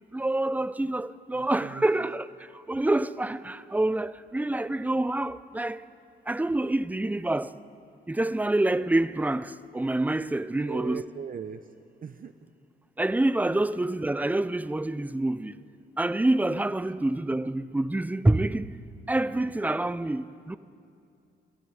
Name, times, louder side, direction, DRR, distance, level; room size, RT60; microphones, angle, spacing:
voice 1, 0.1-2.3 2.7-5.8 6.3-7.5 8.1-11.0 13.0-15.6 16.0-18.7 19.1-20.6, right 2 dB, 10° right, 0.6 m, -27 dB
voice 2, 1.3-2.1 10.5-11.7 12.0-12.3 13.6-13.7 16.8-16.9, right 8 dB, 45° right, 0.9 m, -40 dB
25.0 x 12.5 x 9.7 m
cardioid pair, 90°, 20 cm